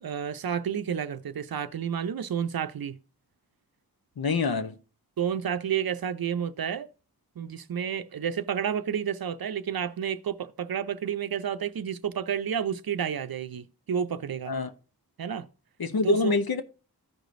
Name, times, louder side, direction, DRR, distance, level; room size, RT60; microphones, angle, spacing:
voice 1, 0.0-3.0 5.2-6.9 7.4-14.6 15.2-15.5 16.0-16.3, right 8 dB, 65° right, 0.6 m, -30 dB
voice 2, 4.2-4.8 14.5-14.7 15.8-16.6, left 3 dB, 65° left, 0.8 m, -25 dB
14.5 x 5.0 x 2.6 m
wide cardioid pair, 90°, 38 cm